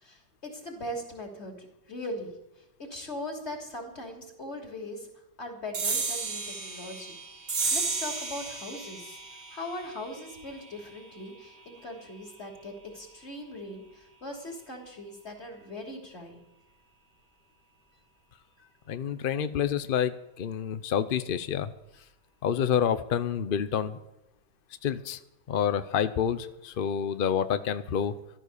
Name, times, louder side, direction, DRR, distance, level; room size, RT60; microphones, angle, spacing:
voice 1, 0.0-1.6 1.9-2.3 2.8-5.1 5.4-7.2 7.7-9.2 9.5-16.4, left 1 dB, 35° left, 2 dB, 3.4 m, -40 dB
sound 1, 5.7-12.6, right 4 dB, 50° right, 2.6 m, -34 dB
voice 2, 18.9-21.7 22.4-24.0 24.8-25.2 25.5-28.1, left 8 dB, 80° left, 12 dB, 0.4 m, -28 dB
15.0 x 12.0 x 6.7 m, 0.91 s
omnidirectional pair, 1.9 m